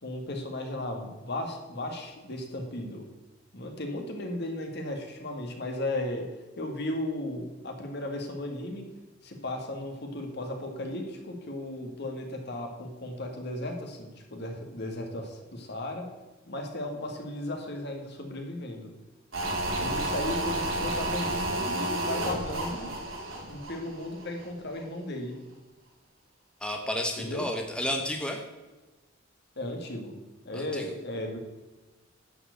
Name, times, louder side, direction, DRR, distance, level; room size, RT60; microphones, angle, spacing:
voice 1, 0.0-3.1 3.5-6.3 6.6-8.9 9.2-16.1 16.5-18.9 19.8-22.9 23.5-25.3 27.2-27.5 29.6-30.1 30.4-31.4, left 1 dB, 55° left, 3 dB, 2.1 m, -35 dB
sound 1, 19.3-24.5 24.8-24.9, right 1 dB, 80° right, 3.3 m, -31 dB
voice 2, 26.6-28.4 30.5-30.9, left 1 dB, 5° left, 3 dB, 1.0 m, -31 dB
11.0 x 6.1 x 8.1 m, 1.2 s
head